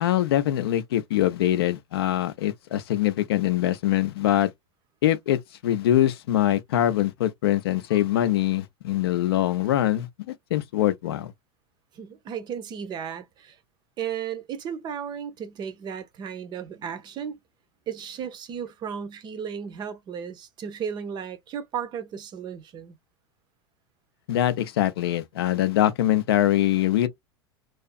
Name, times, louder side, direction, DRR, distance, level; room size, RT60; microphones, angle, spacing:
voice 1, 0.0-4.5 5.0-11.3 24.3-27.1, left 13 dB, 65° left, 0.4 m, -23 dB
voice 2, 11.9-13.6 14.0-17.4 17.9-23.0, right 8 dB, 30° right, 0.5 m, -34 dB
2.6 x 2.4 x 2.3 m
figure-of-eight pair, 85°, 14 cm